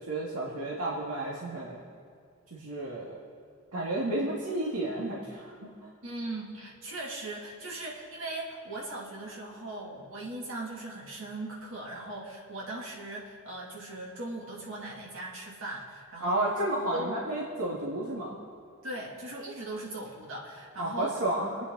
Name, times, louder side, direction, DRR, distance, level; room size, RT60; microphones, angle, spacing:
voice 1, 0.0-1.8 2.5-3.2 3.7-5.9 16.2-18.4 20.8-21.6, right 1 dB, 80° right, -4 dB, 2.2 m, -32 dB
voice 2, 6.0-16.4 16.9-17.1 18.8-21.2, right 2 dB, 65° right, -3 dB, 2.9 m, -39 dB
26.0 x 9.4 x 4.1 m, 2.2 s
head